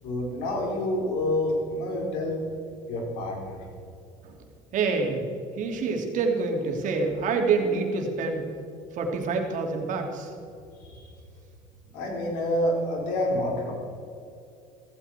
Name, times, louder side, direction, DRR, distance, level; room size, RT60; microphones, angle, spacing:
voice 1, 0.0-2.4 2.9-3.6 10.8-11.1 11.9-13.7, left 1 dB, 80° left, 0 dB, 4.6 m, -28 dB
voice 2, 4.7-5.2 5.6-8.5 9.0-10.3, right 4 dB, 60° right, 2 dB, 2.9 m, -26 dB
15.5 x 15.5 x 4.5 m, 2.5 s
supercardioid pair, 95°, 15 cm